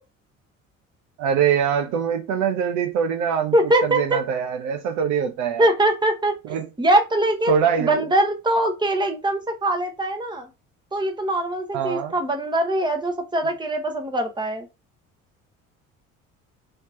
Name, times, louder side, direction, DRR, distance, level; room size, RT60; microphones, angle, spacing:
voice 1, 1.2-5.7 6.5-6.6 7.5-8.0 11.7-12.1, right 7 dB, 50° right, 0.6 m, -23 dB
voice 2, 3.5-4.2 5.6-6.3 6.8-7.5 7.8-10.5 10.9-14.7, right 1 dB, 10° right, 1.0 m, -22 dB
3.2 x 2.9 x 3.9 m
figure-of-eight pair, 55°, 40 cm